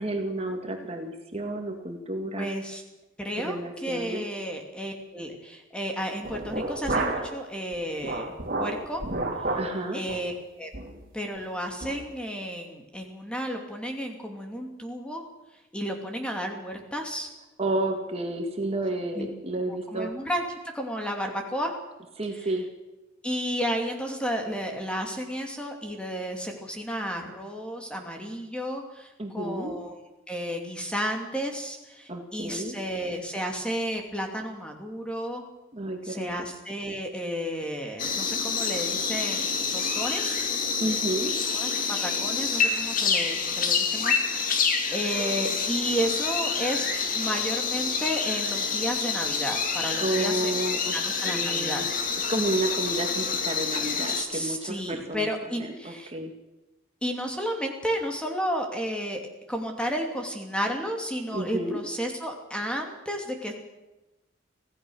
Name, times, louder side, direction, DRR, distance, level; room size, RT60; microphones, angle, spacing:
voice 1, 0.0-2.5 3.4-4.2 9.5-10.0 17.6-20.1 22.2-22.6 29.2-29.7 32.1-32.8 35.7-36.3 40.8-41.3 50.0-50.9 51.2-51.9 52.3-55.3 55.6-55.7 56.1-56.3 61.3-61.8, right 2 dB, 30° right, 3 dB, 2.1 m, -31 dB
voice 2, 2.4-2.8 3.2-9.0 9.9-10.7 11.1-15.2 15.7-17.3 19.1-19.3 19.7-21.7 22.3-22.5 23.2-30.0 30.3-35.4 36.0-40.4 41.5-46.9 47.1-50.5 50.9-51.8 54.1-56.1 57.0-59.2 59.5-63.5, equal, 5° left, 2 dB, 2.6 m, -32 dB
sound 1, 6.2-7.4 7.7-9.7 10.1-10.3 10.7-11.0 11.4-11.5 11.8-12.0, right 2 dB, 45° right, 3.3 m, -30 dB
sound 2, 38.0-54.2, left 5 dB, 45° left, 2.4 m, -27 dB
25.5 x 16.5 x 6.4 m, 1.0 s
head